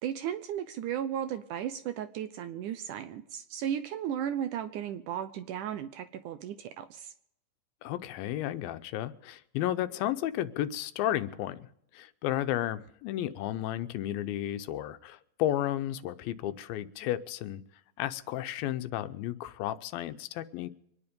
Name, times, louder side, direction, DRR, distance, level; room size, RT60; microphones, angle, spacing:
voice 1, 0.0-7.1, right 9 dB, 75° right, 10 dB, 2.0 m, -35 dB
voice 2, 7.8-11.7 11.9-17.6 18.0-20.7, left 13 dB, 90° left, 11 dB, 2.6 m, -33 dB
25.0 x 9.9 x 5.2 m, 0.74 s
omnidirectional pair, 4.1 m